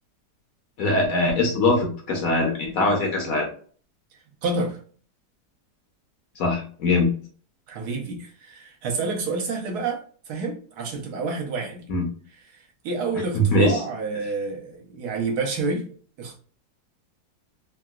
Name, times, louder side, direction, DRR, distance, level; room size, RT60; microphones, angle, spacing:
voice 1, 0.8-3.5 6.4-7.1 11.9-12.0 13.3-13.8, left 2 dB, 60° left, 1.0 m, -22 dB
voice 2, 4.4-4.8 7.7-11.9 12.3-15.8 16.2-16.4, right 3 dB, 70° right, 1.2 m, -29 dB
3.7 x 2.3 x 2.3 m
omnidirectional pair, 1.9 m